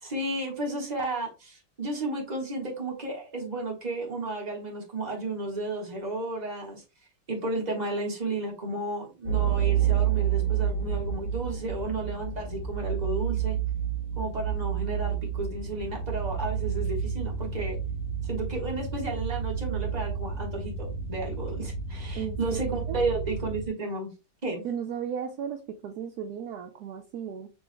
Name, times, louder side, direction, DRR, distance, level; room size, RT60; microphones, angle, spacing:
voice 1, 0.0-6.8 7.3-13.6 14.2-17.8 18.2-24.1 24.4-24.6, right 2 dB, 25° right, 1.4 m, -33 dB
sound 1, 9.3-23.7, right 8 dB, 60° left, 1.3 m, -30 dB
voice 2, 22.1-22.6 22.9-23.0 24.6-27.5, right 8 dB, 70° right, 0.9 m, -35 dB
7.0 x 3.4 x 2.2 m
omnidirectional pair, 2.2 m